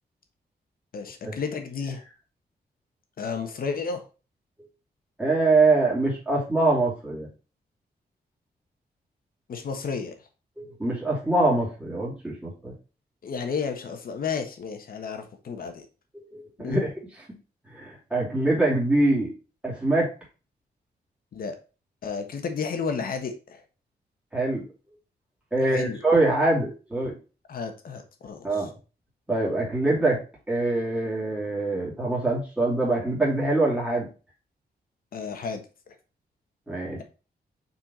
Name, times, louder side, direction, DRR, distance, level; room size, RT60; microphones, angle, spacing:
voice 1, 0.9-2.0 3.2-4.0 9.5-10.1 13.2-15.8 16.6-16.8 21.3-21.6 22.0-23.6 25.6-26.0 27.5-28.7 35.1-35.6, left 5 dB, 60° left, 6 dB, 1.3 m, -32 dB
voice 2, 5.2-7.3 10.6-12.7 16.1-16.9 17.7-19.3 19.6-20.1 24.3-24.7 25.5-27.1 28.4-28.7 29.3-30.2 30.5-34.1 36.7-37.0, right 2 dB, 5° right, -5 dB, 2.8 m, -24 dB
6.1 x 4.4 x 4.2 m, 0.34 s
wide cardioid pair, 165°, 17 cm